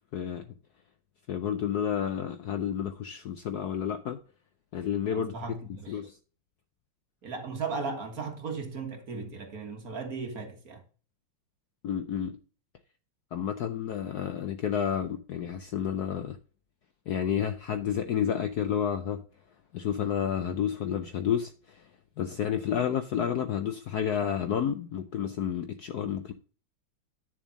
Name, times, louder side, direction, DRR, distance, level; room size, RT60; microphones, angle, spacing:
voice 1, 0.1-0.5 1.3-4.2 4.7-5.3 5.9-6.2 11.8-12.4 13.3-16.4 17.1-19.2 19.7-21.9 22.2-26.3, left 8 dB, 65° left, 1.0 m, -30 dB
voice 2, 5.1-6.0 7.2-10.8, right 4 dB, 45° right, 1.7 m, -36 dB
9.4 x 7.1 x 4.0 m
omnidirectional pair, 2.3 m